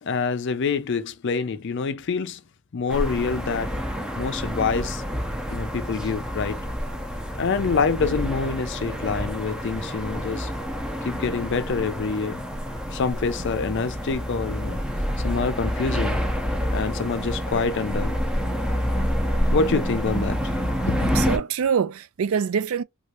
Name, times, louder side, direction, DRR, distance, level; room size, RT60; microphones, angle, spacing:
voice 1, 0.0-2.4 2.7-3.8 4.2-5.0 5.5-6.6 7.4-10.5 11.0-12.4 12.9-14.8 15.2-16.2 16.7-18.2 19.5-20.5 20.8-21.1, left 5 dB, 55° left, 0.4 m, -26 dB
sound 1, 2.9-21.4, equal, 5° right, 0.5 m, -28 dB
voice 2, 21.1-22.8, right 7 dB, 75° right, 0.4 m, -24 dB
3.1 x 2.4 x 2.8 m
head